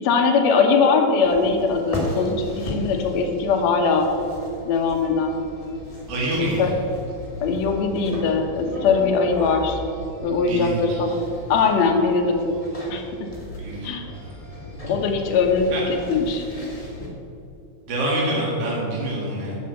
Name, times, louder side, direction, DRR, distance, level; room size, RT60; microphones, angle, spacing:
voice 1, 0.0-4.1 4.6-5.3 6.4-6.7 7.4-9.8 10.2-11.2 11.5-12.6 12.9-13.0 13.8-14.0 14.9-16.4, left 4 dB, 70° left, 2 dB, 2.2 m, -21 dB
sound 1, 1.2-17.1, left 1 dB, 15° left, 1.5 m, -36 dB
voice 2, 6.1-6.6 10.5-11.1 13.6-13.9 15.7-15.8 17.9-19.6, right 1 dB, 55° right, -5 dB, 3.2 m, -26 dB
10.5 x 6.4 x 7.8 m, 2.7 s
omnidirectional pair, 3.4 m